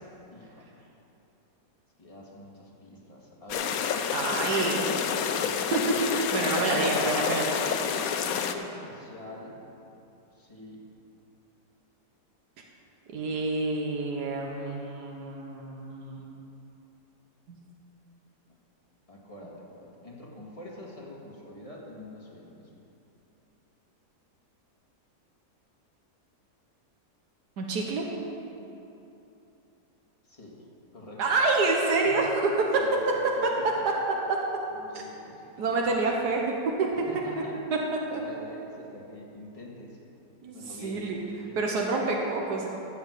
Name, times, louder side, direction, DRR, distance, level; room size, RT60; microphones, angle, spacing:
voice 1, 0.3-0.9 2.0-5.1 6.3-7.4 8.0-9.6 10.3-10.8 19.1-22.7 30.2-30.6 30.9-31.2 32.1-32.2 32.7-33.8 34.7-35.5 37.1-37.6 38.1-40.0 40.5-41.6, left 1 dB, 20° left, -3 dB, 1.8 m, -45 dB
sound 1, 3.5-8.5, left 7 dB, 70° left, 1.1 m, -29 dB
voice 2, 4.1-4.8 5.7-5.8 6.1-7.5 13.1-16.5 17.5-17.6 27.6-28.1 31.2-32.6 33.4-33.5 34.9-35.0 35.6-36.9 37.3-37.4 38.1-38.2 40.4-41.2 41.6-42.7, right 3 dB, 85° right, 0 dB, 1.7 m, -28 dB
14.5 x 5.3 x 8.1 m, 2.9 s
omnidirectional pair, 1.7 m